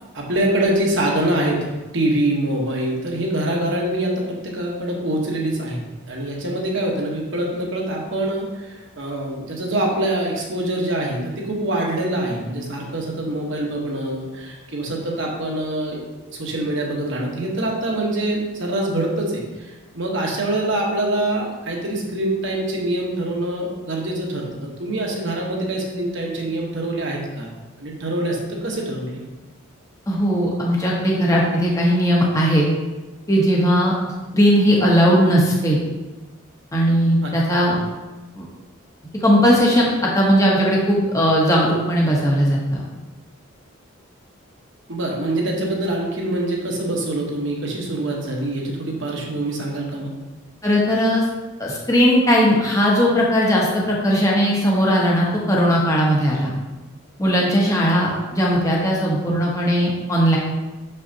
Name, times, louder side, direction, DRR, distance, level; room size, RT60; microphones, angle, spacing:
voice 1, 0.0-16.0 16.3-27.5 27.8-29.2 37.2-37.6 44.9-50.1, right 1 dB, 60° right, -1 dB, 1.1 m, -25 dB
voice 2, 30.1-32.6 33.3-33.9 34.3-35.8 36.7-37.8 38.4-38.5 39.2-39.9 40.1-42.8 50.6-51.2 51.6-56.5 57.2-60.4, equal, 15° left, -3 dB, 1.0 m, -18 dB
6.4 x 5.4 x 2.8 m, 1.1 s
head